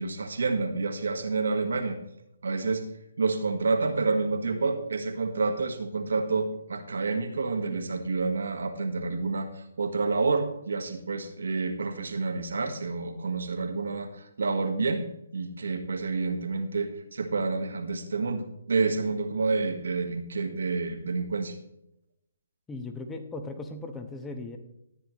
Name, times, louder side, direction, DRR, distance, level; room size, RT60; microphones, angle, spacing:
voice 1, 0.0-2.0 2.4-2.8 3.2-15.0 15.3-21.5, right 4 dB, 65° right, 5 dB, 1.7 m, -29 dB
voice 2, 22.7-24.6, left 2 dB, 10° left, 6 dB, 1.3 m, -37 dB
14.0 x 9.6 x 3.2 m, 0.84 s
figure-of-eight pair, 135°, 0 cm